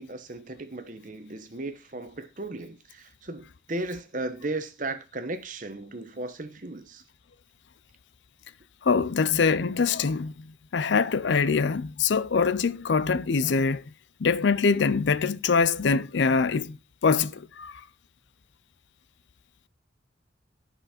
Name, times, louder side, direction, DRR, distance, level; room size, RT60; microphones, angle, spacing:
voice 1, 0.0-7.0, right 2 dB, 40° right, 1.0 m, -36 dB
voice 2, 8.8-10.5 10.7-13.8 14.2-16.8 17.0-17.8, left 5 dB, 70° left, 0.5 m, -24 dB
9.6 x 5.5 x 4.2 m
head